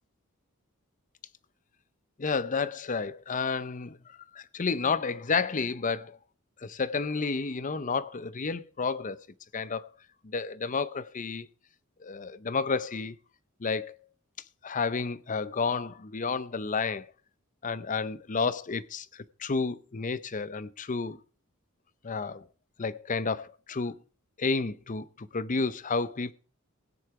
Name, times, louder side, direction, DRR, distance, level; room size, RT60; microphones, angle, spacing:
voice 1, 2.2-6.2 6.6-9.2 9.5-9.9 10.2-11.5 12.0-13.2 13.6-13.9 14.6-17.1 17.6-21.2 22.0-22.4 22.8-24.0 24.4-26.3, left 4 dB, 35° left, 0.6 m, -31 dB
17.0 x 9.8 x 4.7 m
head